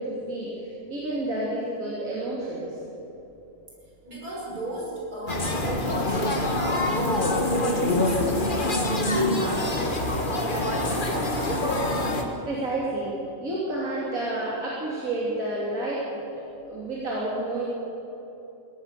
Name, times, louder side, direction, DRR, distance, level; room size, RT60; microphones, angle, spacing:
voice 1, 0.0-2.7 12.5-16.1 16.4-17.6, right 2 dB, 70° right, -6 dB, 3.6 m, -30 dB
voice 2, 4.0-8.5 8.8-11.5, equal, 85° right, -4 dB, 6.4 m, -35 dB
sound 1, 5.3-12.2, left 1 dB, 35° left, 1.9 m, -25 dB
22.0 x 17.5 x 6.7 m, 3.0 s
omnidirectional pair, 1.5 m